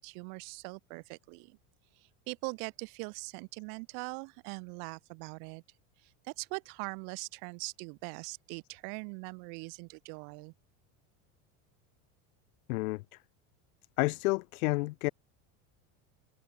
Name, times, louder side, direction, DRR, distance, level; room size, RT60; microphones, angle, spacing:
voice 1, 0.0-1.6 2.0-5.6 6.0-10.5, right 40 dB or more, 50° right, 6.9 m, -42 dB
voice 2, 12.7-13.0 14.0-15.1, left 23 dB, 80° left, 1.0 m, -30 dB
cardioid pair, 180°, 42 cm